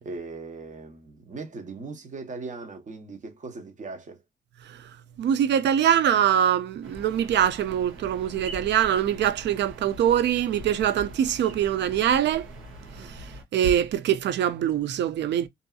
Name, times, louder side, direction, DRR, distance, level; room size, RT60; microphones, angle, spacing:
voice 1, 0.0-4.2 13.0-13.2, right 3 dB, 40° right, 1.0 m, -39 dB
voice 2, 5.2-12.5 13.5-15.5, right 10 dB, 65° right, 0.5 m, -23 dB
sound 1, 6.8-13.4, right 1 dB, 80° right, 1.1 m, -43 dB
2.7 x 2.6 x 2.3 m
cardioid pair, 90°, 20 cm